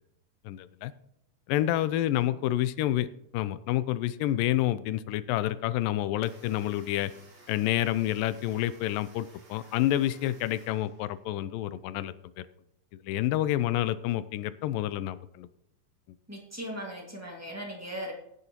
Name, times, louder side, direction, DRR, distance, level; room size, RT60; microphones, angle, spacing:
voice 1, 0.5-0.9 1.5-3.1 3.3-7.1 7.5-12.5 13.0-15.5, left 13 dB, 85° left, 15 dB, 2.3 m, -28 dB
sound 1, 6.2-11.4, right 2 dB, 60° right, 4.8 m, -56 dB
voice 2, 16.3-18.1, equal, 10° right, -2 dB, 0.8 m, -38 dB
16.0 x 9.8 x 3.0 m, 0.80 s
omnidirectional pair, 3.9 m